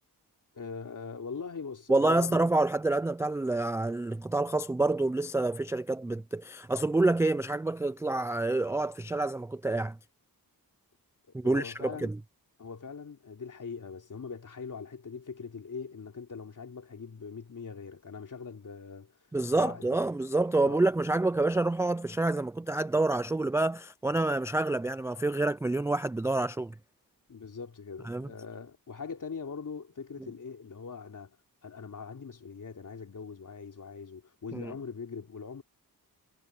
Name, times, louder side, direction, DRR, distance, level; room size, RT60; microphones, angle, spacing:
voice 1, 0.5-2.5 11.4-12.1 12.6-19.1 19.5-20.0 20.6-20.8 27.3-31.4 31.6-35.6, left 5 dB, 55° left, 3.3 m, -41 dB
voice 2, 1.9-10.0 11.3-12.2 19.3-26.8 28.0-28.3 34.5-34.7, right 2 dB, 10° right, 0.3 m, -28 dB
wide cardioid pair, 90°, 37 cm